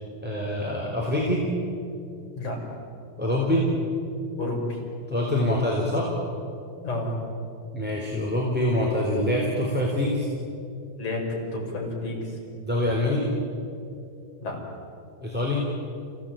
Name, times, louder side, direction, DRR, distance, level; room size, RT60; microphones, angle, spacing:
voice 1, 0.2-1.4 3.2-3.7 5.1-6.1 7.7-10.3 12.6-13.3 15.2-15.6, left 1 dB, 5° right, -3 dB, 3.3 m, -25 dB
voice 2, 4.4-4.8 6.8-7.2 11.0-12.4 14.4-14.6, left 2 dB, 50° left, -2 dB, 6.8 m, -30 dB
30.0 x 17.5 x 9.0 m, 2.6 s
omnidirectional pair, 4.3 m